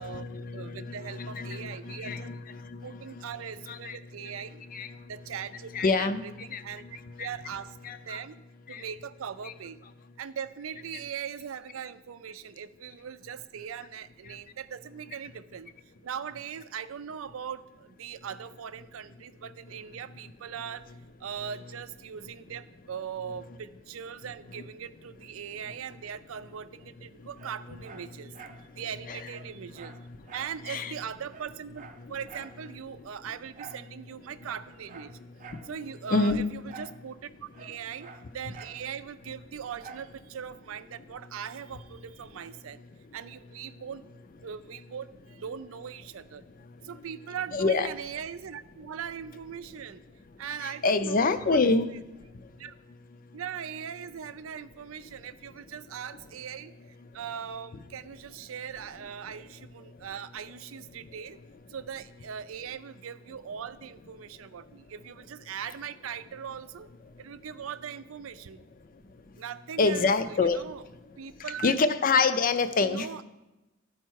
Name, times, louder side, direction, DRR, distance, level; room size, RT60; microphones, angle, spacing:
voice 1, 0.0-3.2 3.7-4.0 4.7-5.0 5.7-6.2 6.5-6.6 7.2-7.3 7.8-8.2 8.7-8.8 9.4-9.5 29.0-29.3 30.6-30.9 36.1-36.4 38.5-38.6 47.5-47.9 50.6-51.9 69.8-70.6 71.6-73.1, left 4 dB, 45° left, 11 dB, 0.5 m, -27 dB
voice 2, 0.5-2.3 2.8-4.6 5.0-6.9 7.2-8.3 8.7-9.8 10.2-15.7 16.0-20.9 21.2-28.3 28.8-29.9 30.3-35.1 35.6-42.8 43.1-44.1 44.4-46.4 46.8-50.0 50.4-52.0 52.6-52.7 53.3-61.4 61.7-66.9 67.2-68.6 69.4-70.8 71.2-71.8 72.8-73.2, right 8 dB, 90° right, 13 dB, 0.5 m, -40 dB
Dog, 27.4-28.6 29.0-29.1 29.3-30.6 30.9-31.0 31.3-32.6 33.5-33.9 34.4-35.7 36.7-37.0 37.3-38.8 39.8-40.1 40.6-40.7, right 5 dB, 40° right, 0.5 m, -48 dB
13.0 x 4.4 x 4.7 m, 1.0 s
head